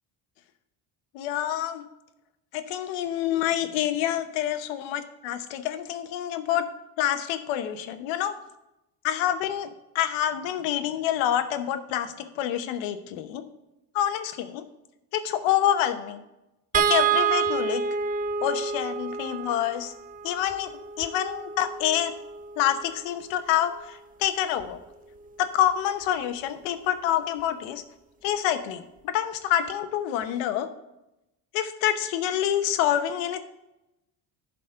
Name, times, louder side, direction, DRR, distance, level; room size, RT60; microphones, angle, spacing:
voice 1, 1.1-1.8 2.5-6.7 7.0-8.3 9.0-13.4 13.9-14.6 15.1-16.2 16.7-17.8 18.4-19.9 20.2-20.7 21.0-22.1 22.6-24.8 25.4-27.8 28.2-30.7 31.5-33.4, left 11 dB, 80° left, 9 dB, 1.0 m, -27 dB
sound 1, 16.7-23.1 24.6-24.8 25.1-25.3, right 6 dB, 20° right, 0.3 m, -29 dB
11.5 x 4.1 x 5.6 m, 0.93 s
supercardioid pair, 105°, 46 cm